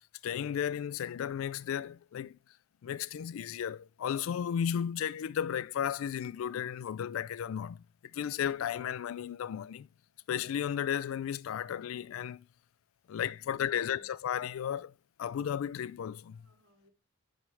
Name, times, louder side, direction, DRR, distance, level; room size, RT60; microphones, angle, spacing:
voice 1, 0.2-2.4 2.8-7.8 8.1-9.9 10.3-12.5 13.1-14.9 15.2-16.4, left 9 dB, 75° left, 0.3 m, -34 dB
voice 2, 13.3-14.1 16.3-16.9, equal, 75° right, 2.4 m, -65 dB
8.9 x 3.3 x 4.7 m
head